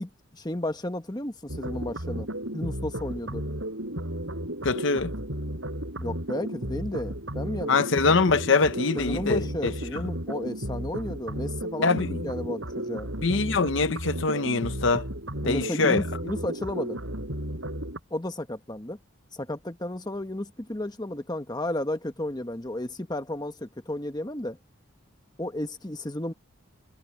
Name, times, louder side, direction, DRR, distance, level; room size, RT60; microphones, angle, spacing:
voice 1, 0.0-2.3 2.5-3.4 6.0-7.8 8.9-13.1 15.4-17.0 18.1-19.0 19.3-24.6 25.4-26.3, left 1 dB, 20° left, 1.3 m, -33 dB
sound 1, 1.5-18.0, right 1 dB, 65° right, 6.6 m, -34 dB
voice 2, 4.6-5.1 7.7-10.1 11.8-12.3 13.2-15.1 15.4-16.0, left 4 dB, 60° left, 0.8 m, -24 dB
head